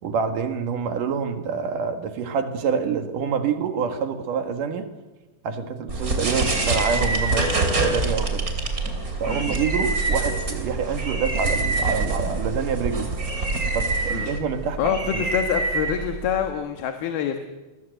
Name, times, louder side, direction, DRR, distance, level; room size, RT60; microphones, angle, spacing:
voice 1, 0.0-4.9 5.4-8.5 9.2-13.1 13.7-15.2, right 6 dB, 65° right, 8 dB, 3.1 m, -27 dB
sound 1, 5.9-16.5, right 3 dB, 25° right, 2.9 m, -25 dB
voice 2, 14.8-17.4, left 8 dB, 85° left, 6 dB, 3.4 m, -26 dB
28.5 x 20.5 x 7.9 m, 1.2 s
omnidirectional pair, 4.2 m